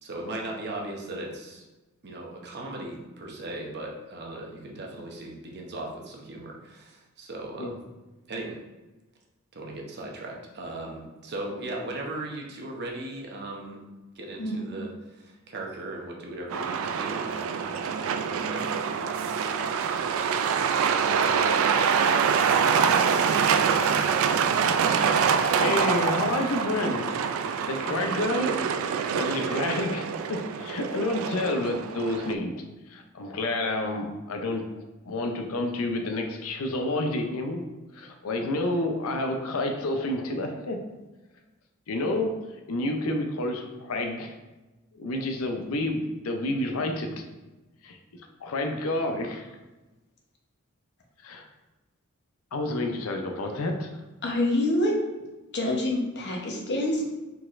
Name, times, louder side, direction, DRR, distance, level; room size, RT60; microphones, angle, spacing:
voice 1, 0.0-1.6 2.0-7.8 8.3-8.6 9.5-13.8 14.2-18.6, right 2 dB, 50° right, 0 dB, 0.8 m, -38 dB
Truck, 16.5-32.3, right 6 dB, 65° right, 0.3 m, -25 dB
voice 2, 25.6-27.1 27.7-28.6 29.1-34.7 35.1-37.6 37.9-40.8 41.9-42.4 42.7-44.3 45.0-47.2 47.8-48.0 48.4-49.5 51.2-51.4 52.5-53.9, left 2 dB, 75° left, 4 dB, 0.6 m, -29 dB
voice 3, 54.2-55.0 55.5-57.1, left 1 dB, 55° left, -1 dB, 0.9 m, -27 dB
4.5 x 4.0 x 2.5 m, 1.1 s
head